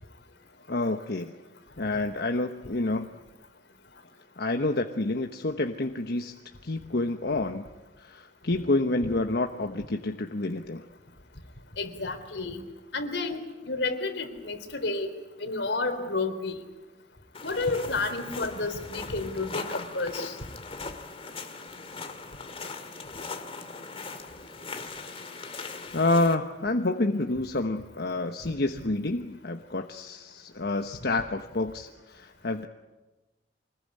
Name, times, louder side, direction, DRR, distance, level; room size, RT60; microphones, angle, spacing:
voice 1, 0.7-1.3 1.8-3.1 4.4-6.3 6.6-7.6 8.0-10.9 25.9-32.7, left 2 dB, 65° left, 5 dB, 1.1 m, -28 dB
voice 2, 11.8-12.6 12.9-15.1 15.4-16.6 17.4-20.4, left 3 dB, 85° left, 7 dB, 3.5 m, -31 dB
sound 1, 17.3-26.4, left 4 dB, 35° left, 2.3 m, -40 dB
25.0 x 20.5 x 9.8 m, 1.1 s
head